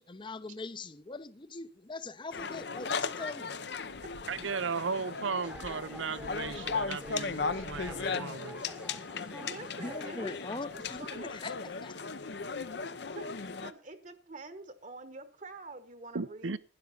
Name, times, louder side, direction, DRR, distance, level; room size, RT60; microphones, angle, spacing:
voice 1, 0.0-3.6 9.8-12.0, left 3 dB, 25° left, 0.7 m, -42 dB
sound 1, 2.3-13.7, left 4 dB, 60° left, 0.8 m, -37 dB
sound 2, 4.3-10.5, equal, 5° right, 1.0 m, -49 dB
voice 2, 4.3-8.6 16.1-16.6, right 5 dB, 90° right, 0.7 m, -36 dB
voice 3, 9.2-10.3 10.7-11.4 13.1-16.6, right 3 dB, 40° right, 1.1 m, -47 dB
12.0 x 10.5 x 5.6 m
head